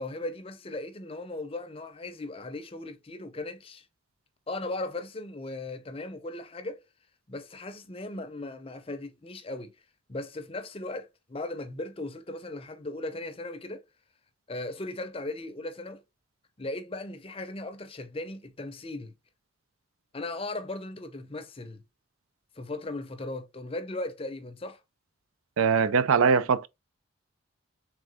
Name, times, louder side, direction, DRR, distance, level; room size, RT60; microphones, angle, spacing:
voice 1, 0.0-3.9 4.5-6.8 7.3-9.7 10.1-13.8 14.5-16.0 16.6-19.1 20.1-21.8 22.6-24.8, left 2 dB, 25° left, 0.5 m, -37 dB
voice 2, 25.6-26.7, right 5 dB, 80° right, 0.4 m, -22 dB
3.8 x 3.4 x 3.4 m
head